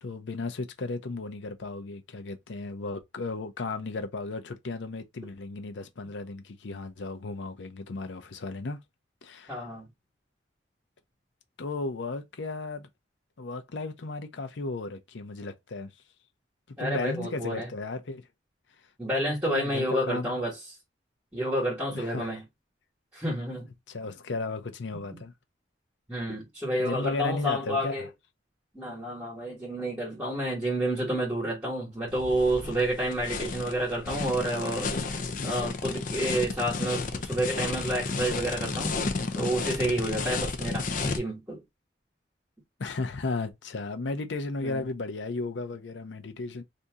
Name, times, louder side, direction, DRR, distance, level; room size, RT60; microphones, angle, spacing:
voice 1, 0.0-8.8 9.2-9.7 11.6-12.9 13.4-15.9 16.8-18.3 18.8-18.9 19.2-20.4 21.9-22.3 23.9-25.3 26.8-28.1 42.8-46.6, left 3 dB, 90° left, 0.6 m, -35 dB
voice 2, 9.5-9.9 16.8-17.7 19.0-20.5 21.3-22.5 23.1-23.7 25.1-25.2 26.1-28.1 28.7-34.9 35.4-38.9 39.3-41.6 44.6-44.8, right 1 dB, 10° right, 1.4 m, -29 dB
sound 1, 32.1-41.2, left 4 dB, 45° left, 0.5 m, -32 dB
2.7 x 2.6 x 3.4 m
head